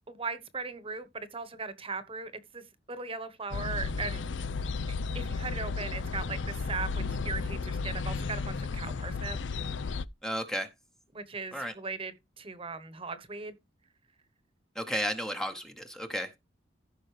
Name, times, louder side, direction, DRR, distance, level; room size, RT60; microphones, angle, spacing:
voice 1, 0.1-4.2 4.9-9.4 11.1-13.5, right 4 dB, 30° right, 1.1 m, -38 dB
sound 1, 3.5-10.1, left 4 dB, 70° left, 0.5 m, -33 dB
voice 2, 10.2-10.7 11.5-11.7 14.7-16.3, equal, 5° left, 0.9 m, -33 dB
15.0 x 5.4 x 3.3 m
head